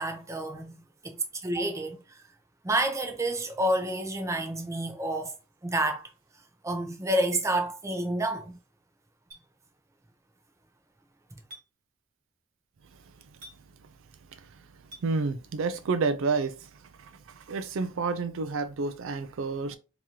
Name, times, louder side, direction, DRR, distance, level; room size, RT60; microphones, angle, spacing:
voice 1, 0.0-2.2 2.6-5.3 5.6-6.1 6.6-8.6 11.3-11.4, right 1 dB, 15° right, 0.6 m, -29 dB
Chink clink, 9.3-9.5 11.5-11.7 13.4-13.6 14.9-15.1, equal, 40° right, 1.7 m, -46 dB
voice 2, 15.0-16.7 17.0-19.8, right 4 dB, 65° right, 0.4 m, -29 dB
3.7 x 2.9 x 2.8 m
head